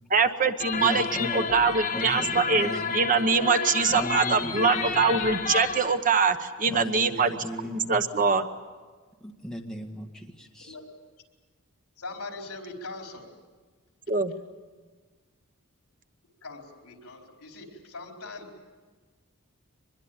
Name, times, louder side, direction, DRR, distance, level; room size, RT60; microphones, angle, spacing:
voice 1, 0.1-7.3 7.6-8.5 14.1-14.3, right 5 dB, 35° right, 9 dB, 1.0 m, -24 dB
sound 1, 0.6-6.0, left 5 dB, 40° left, 1.7 m, -31 dB
voice 2, 0.8-2.9 3.9-5.3 6.7-8.0 9.2-10.8, equal, 5° left, 1 dB, 1.8 m, -37 dB
voice 3, 12.0-13.3 16.4-18.5, left 3 dB, 70° left, 2 dB, 4.4 m, -41 dB
24.5 x 21.0 x 8.9 m, 1.4 s
head